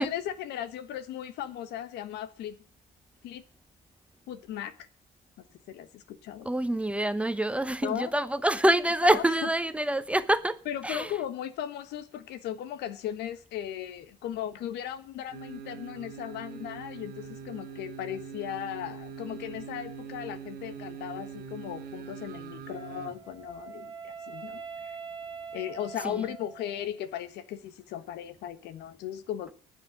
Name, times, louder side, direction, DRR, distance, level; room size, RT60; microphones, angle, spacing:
voice 1, 0.0-2.6 3.2-3.4 4.3-4.7 5.7-6.5 7.8-8.1 9.0-9.2 10.6-25.0 25.5-29.5, left 10 dB, 80° left, 1.4 m, -37 dB
voice 2, 6.4-11.2 25.9-26.3, right 1 dB, 5° right, 0.9 m, -26 dB
sound 1, 15.3-23.2 23.5-23.6, right 7 dB, 65° right, 1.9 m, -43 dB
Wind instrument woodwind instrument, 22.7-26.9, right 6 dB, 25° right, 1.5 m, -43 dB
9.8 x 9.5 x 8.8 m
cardioid pair, 110°, 17 cm